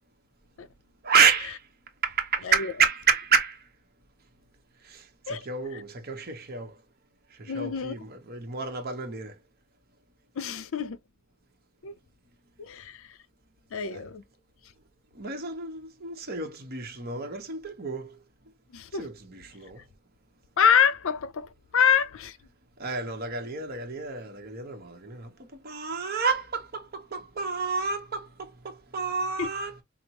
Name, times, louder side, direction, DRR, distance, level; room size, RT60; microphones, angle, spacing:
voice 1, 1.0-1.6 2.0-3.6 4.9-6.7 7.4-9.3 13.9-14.0 15.2-18.1 19.0-19.8 22.8-25.3 25.6-29.7, right 5 dB, 45° right, 1.0 m, -29 dB
voice 2, 7.5-7.9 10.4-11.0 11.8-11.9 12.6-13.1 13.7-14.2 18.7-19.1 20.6-22.4 29.4-29.5, left 7 dB, 65° left, 0.5 m, -26 dB
5.0 x 2.0 x 2.9 m
head